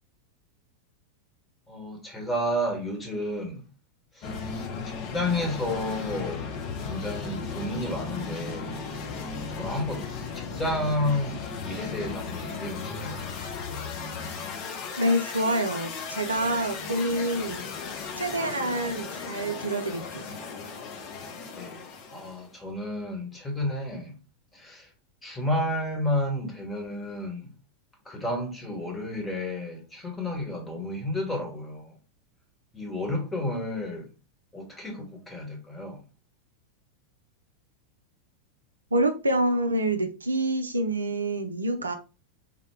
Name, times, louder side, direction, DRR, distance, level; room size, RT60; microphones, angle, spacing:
voice 1, 1.7-3.6 4.1-4.3 4.9-6.5 6.9-8.7 9.4-10.1 10.5-13.3 21.5-24.2 24.5-24.9 25.2-27.5 28.0-31.9 32.7-34.1 34.5-36.0, left 1 dB, 10° left, 1.1 m, -31 dB
sound 1, 4.2-22.5, left 5 dB, 40° left, 0.6 m, -36 dB
voice 2, 15.0-17.6 18.2-20.4 38.9-42.0, right 1 dB, 75° right, 0.4 m, -27 dB
3.5 x 2.2 x 3.4 m
figure-of-eight pair, 90°, 0 cm